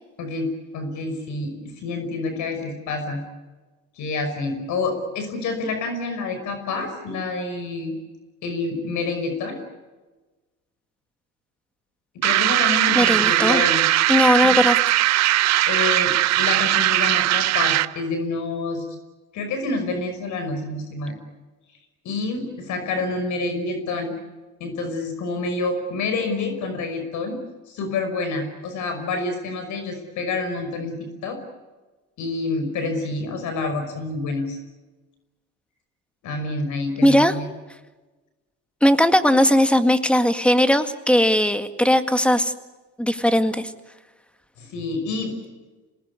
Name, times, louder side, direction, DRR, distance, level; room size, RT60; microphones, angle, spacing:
voice 1, 0.2-0.5 0.7-3.2 4.0-7.9 8.4-9.6 12.1-13.9 14.4-14.6 15.7-18.9 19.3-21.1 22.0-24.2 24.6-27.4 27.7-31.0 31.2-31.4 32.2-34.6 36.2-37.5 44.6-45.3, left 3 dB, 65° left, 6 dB, 5.7 m, -28 dB
sound 1, 12.2-18.0, right 15 dB, 55° right, 0.8 m, -19 dB
voice 2, 13.0-13.6 14.1-14.9 37.0-37.4 38.8-42.5 43.0-43.7, equal, 5° left, 8 dB, 2.0 m, -18 dB
27.5 x 19.5 x 9.8 m, 1.2 s
supercardioid pair, 95°, 31 cm